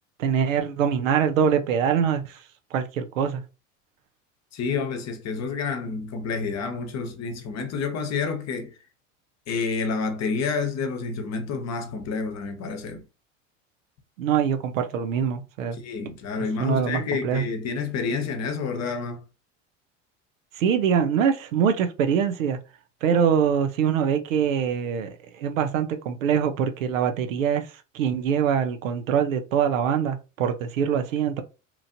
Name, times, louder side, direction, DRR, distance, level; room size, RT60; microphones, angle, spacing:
voice 1, 0.2-2.4 2.7-3.4 14.2-15.8 16.6-17.4 20.6-22.6 23.0-27.7 27.9-31.4, right 7 dB, 85° right, 0.6 m, -24 dB
voice 2, 4.5-8.7 9.5-13.0 15.7-19.2, left 5 dB, 45° left, 0.9 m, -29 dB
3.0 x 2.5 x 2.6 m
hypercardioid pair, 75°, 38 cm